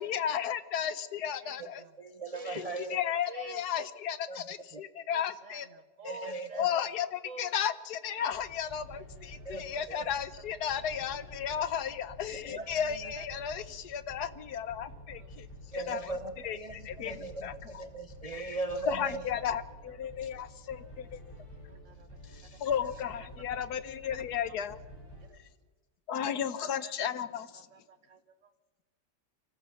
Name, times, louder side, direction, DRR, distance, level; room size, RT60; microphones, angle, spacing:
voice 1, 0.0-1.8 2.4-5.7 6.0-6.1 6.5-15.5 15.7-16.0 16.4-17.5 18.3-18.6 18.9-21.2 22.6-24.8 26.1-27.7, left 8 dB, 60° left, 13 dB, 1.3 m, -34 dB
voice 2, 1.4-1.9 2.3-2.6 3.3-3.6 5.1-6.7 7.2-7.5 8.9-9.1 9.9-10.0 12.6-12.7 13.2-13.5 15.2-15.3 17.4-17.8 19.9-20.0 21.7-22.2 22.5-22.9 25.3-25.4 26.8-27.1 27.5-28.5, right 4 dB, 50° right, 11 dB, 1.0 m, -49 dB
voice 3, 2.0-3.0 4.3-4.5 4.7-4.8 6.1-6.7 9.4-10.1 12.0-12.1 12.4-13.1 15.7-19.2 20.2-20.3 22.2-22.7, right 2 dB, 65° right, 7 dB, 0.3 m, -39 dB
sound 1, 8.3-25.3, equal, 10° left, 6.9 m, -50 dB
25.0 x 15.0 x 7.1 m, 1.3 s
omnidirectional pair, 2.2 m